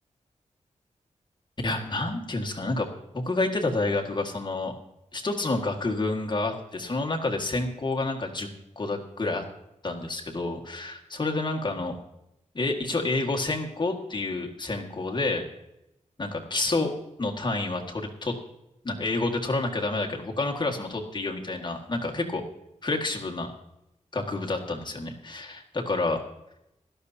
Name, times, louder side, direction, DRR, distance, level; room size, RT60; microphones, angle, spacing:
voice 1, 1.6-2.9 3.1-4.7 5.1-8.5 8.8-9.4 9.8-12.0 12.5-15.5 16.2-16.9 17.2-18.4 18.8-22.4 22.8-23.5 24.1-26.2, left 2 dB, 35° left, 0 dB, 1.8 m, -29 dB
17.0 x 12.5 x 2.8 m, 0.85 s
wide cardioid pair, 125°, 13 cm